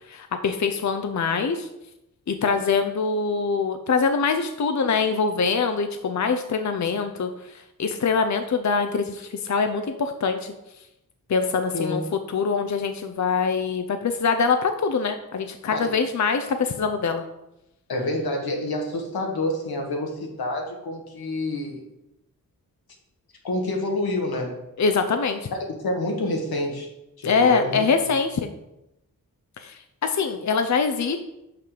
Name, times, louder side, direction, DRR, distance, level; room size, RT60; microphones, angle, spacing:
voice 1, 0.1-1.7 2.3-10.5 11.3-12.0 12.3-17.2 24.8-25.4 27.2-28.5 29.6-31.2, left 5 dB, 50° left, 7 dB, 0.6 m, -24 dB
voice 2, 17.9-21.8 23.4-24.5 25.5-25.6 25.8-26.9 27.2-27.9, left 2 dB, 90° left, 1 dB, 1.6 m, -28 dB
5.9 x 5.7 x 5.0 m, 0.89 s
cardioid pair, 55°, 36 cm